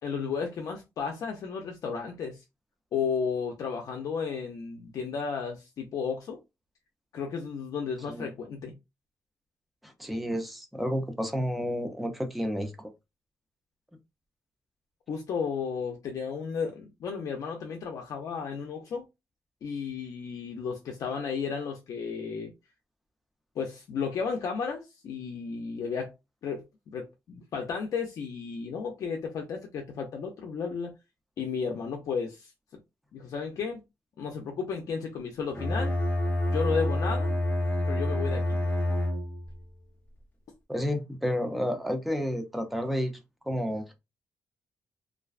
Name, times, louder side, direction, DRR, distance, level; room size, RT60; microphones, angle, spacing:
voice 1, 0.0-2.4 2.9-6.4 7.1-8.7 15.1-19.1 19.6-22.5 23.6-26.1 26.4-30.9 31.4-32.5 33.1-33.8 34.2-36.0 36.5-37.4 37.9-38.6, left 6 dB, 65° left, 0.5 m, -33 dB
voice 2, 9.8-12.9 40.7-43.1 43.5-43.9, equal, ahead, 0.4 m, -31 dB
Bowed string instrument, 35.5-39.6, left 1 dB, 25° left, 0.8 m, -28 dB
2.4 x 2.2 x 2.3 m
cardioid pair, 135°, 6 cm